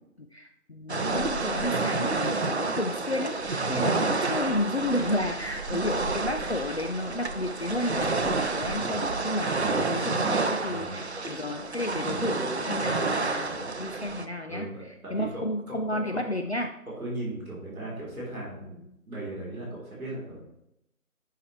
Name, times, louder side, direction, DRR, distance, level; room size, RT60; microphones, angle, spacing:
voice 1, 0.0-16.7, left 1 dB, 50° left, 5 dB, 0.5 m, -32 dB
sound 1, 0.9-14.3, right 3 dB, 50° right, 0.5 m, -29 dB
voice 2, 9.3-10.0 10.7-11.0 14.5-16.2 16.8-20.4, right 1 dB, ahead, -20 dB, 1.6 m, -37 dB
8.4 x 5.6 x 3.1 m, 0.82 s
figure-of-eight pair, 165°, 44 cm